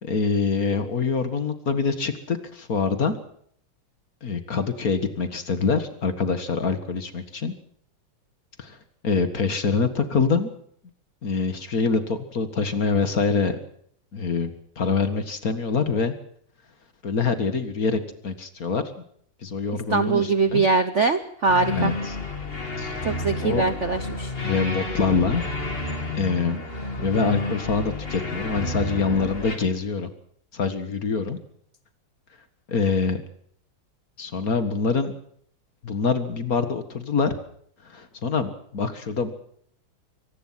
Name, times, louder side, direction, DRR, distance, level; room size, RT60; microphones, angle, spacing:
voice 1, 0.0-3.2 4.2-7.5 8.6-8.8 9.0-10.5 11.2-13.6 14.1-16.1 17.0-18.8 19.4-20.6 21.7-22.2 22.8-23.2 23.4-23.7 24.4-25.5 26.1-26.7 27.0-30.1 30.5-31.4 32.7-33.2 34.2-35.1 35.8-37.3 37.8-39.3, left 4 dB, 45° left, 10 dB, 2.1 m, -25 dB
voice 2, 19.9-21.9 23.0-24.3, right 4 dB, 50° right, 11 dB, 0.9 m, -22 dB
sound 1, 21.5-29.6, left 2 dB, 25° left, 3.1 m, -30 dB
24.5 x 18.5 x 5.8 m, 0.63 s
omnidirectional pair, 2.3 m